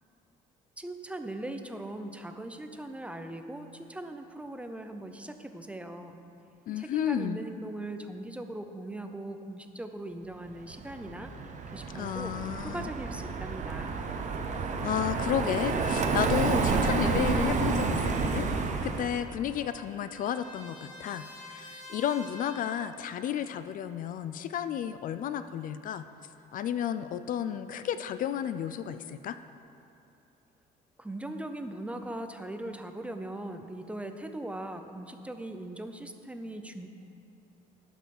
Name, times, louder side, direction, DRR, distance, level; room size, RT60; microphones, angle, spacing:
voice 1, 0.8-6.2 6.8-14.0 31.0-36.9, right 1 dB, 5° right, 7 dB, 0.6 m, -40 dB
voice 2, 6.7-7.4 11.9-12.8 14.8-18.5 18.8-26.1 26.5-29.4, left 9 dB, 55° left, 12 dB, 0.4 m, -32 dB
Car passing by, 10.7-19.3, right 4 dB, 45° right, 0.9 m, -29 dB
Trumpet, 19.0-23.0, left 1 dB, 25° left, 2.2 m, -49 dB
11.5 x 5.4 x 5.9 m, 2.7 s
cardioid pair, 110°, 17 cm